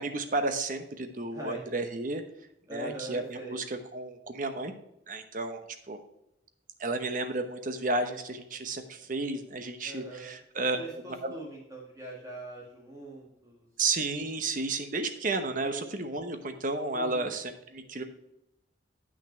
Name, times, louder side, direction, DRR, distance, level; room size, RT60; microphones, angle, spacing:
voice 1, 0.0-2.2 2.7-4.7 5.1-6.0 6.8-11.3 13.8-18.0, right 3 dB, 45° right, 7 dB, 0.9 m, -32 dB
voice 2, 1.3-1.6 2.7-3.6 9.8-10.4 10.7-13.7 15.6-15.8 16.9-17.3, right 1 dB, 15° right, -3 dB, 1.8 m, -42 dB
8.4 x 6.2 x 4.4 m, 0.87 s
head